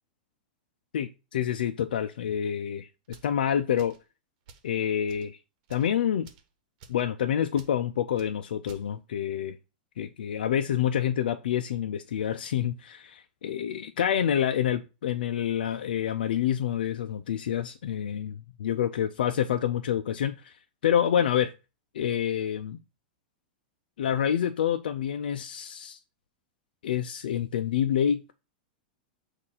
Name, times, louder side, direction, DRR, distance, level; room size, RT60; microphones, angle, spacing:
voice 1, 0.9-2.9 3.2-3.9 4.6-5.4 5.7-6.3 6.9-9.6 10.0-20.6 20.8-21.5 21.9-22.8 24.0-26.0 26.8-28.3, left 9 dB, 85° left, 0.5 m, -27 dB
sound 1, 3.0-3.3 3.8-4.0 4.5-4.7 5.0-5.3 5.6-5.9 6.2-6.5 6.8-7.0 7.5-7.7 8.2-8.3 8.6-8.9, right 5 dB, 55° right, 1.2 m, -51 dB
6.5 x 2.6 x 5.6 m
supercardioid pair, 140°, 5 cm